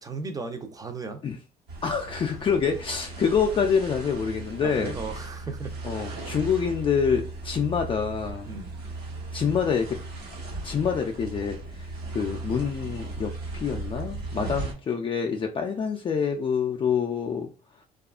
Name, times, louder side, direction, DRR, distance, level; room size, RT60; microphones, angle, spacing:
voice 1, 0.0-1.2 4.6-6.2 8.5-8.7 14.4-14.6, right 3 dB, 20° right, 0.5 m, -36 dB
sound 1, 1.7-14.7, right 2 dB, 75° right, 1.0 m, -37 dB
voice 2, 1.8-5.0 5.8-8.5 9.3-10.0 10.6-11.9 12.1-17.5, left 6 dB, 30° left, 0.3 m, -26 dB
2.7 x 2.4 x 2.3 m
cardioid pair, 110°, 17 cm